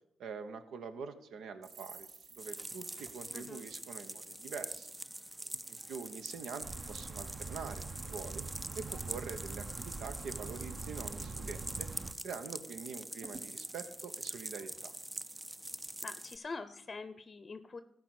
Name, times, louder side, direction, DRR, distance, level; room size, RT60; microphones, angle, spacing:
voice 1, 0.2-4.9 5.7-8.4 8.7-11.9 12.2-14.9, right 5 dB, 80° right, 8 dB, 1.0 m, -45 dB
sound 1, 1.6-5.2 5.5-5.7 6.0-6.6 7.1-7.9 8.2-9.9 10.2-10.4 10.7-11.2 11.6-11.7 12.0-12.7 12.9-13.0 13.2-15.1 15.6-15.9, right 4 dB, 65° right, 1.3 m, -56 dB
sound 2, 2.4-16.4, right 1 dB, 15° right, 0.4 m, -44 dB
voice 2, 3.3-3.6 16.0-17.8, left 4 dB, 40° left, 12 dB, 0.7 m, -44 dB
sound 3, 6.6-12.1, right 4 dB, 40° right, 0.9 m, -44 dB
13.5 x 4.9 x 8.1 m, 0.77 s
supercardioid pair, 60°, 0 cm